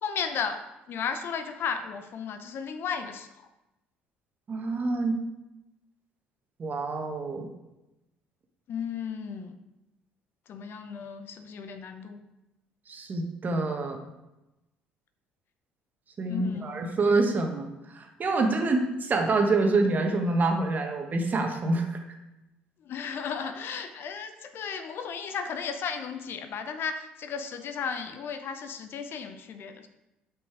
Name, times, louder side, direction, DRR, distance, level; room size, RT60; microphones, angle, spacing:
voice 1, 0.0-0.6 0.9-3.3 8.7-9.6 10.5-12.2 16.3-17.0 22.8-29.9, left 6 dB, 50° left, 8 dB, 0.7 m, -34 dB
voice 2, 4.5-5.2 6.6-7.5 12.9-14.0 16.2-22.0, right 3 dB, 35° right, 4 dB, 1.3 m, -26 dB
8.6 x 5.3 x 4.8 m, 0.96 s
figure-of-eight pair, 55°, 5 cm